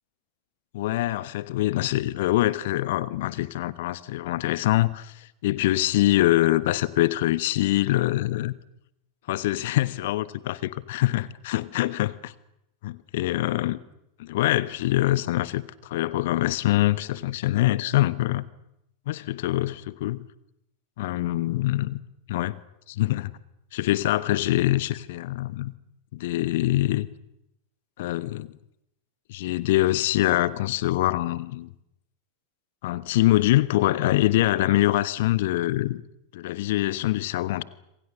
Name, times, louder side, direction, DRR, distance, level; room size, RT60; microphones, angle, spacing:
voice 1, 0.7-8.5 9.3-12.3 12.8-13.8 14.2-18.5 19.1-20.3 21.0-22.0 22.3-22.6 22.9-23.3 23.7-25.7 26.1-27.1 28.0-28.5 29.3-31.7 32.8-36.0 36.3-37.6, left 16 dB, 55° left, 1.2 m, -24 dB
26.5 x 26.5 x 6.6 m
figure-of-eight pair, 90°, 0 cm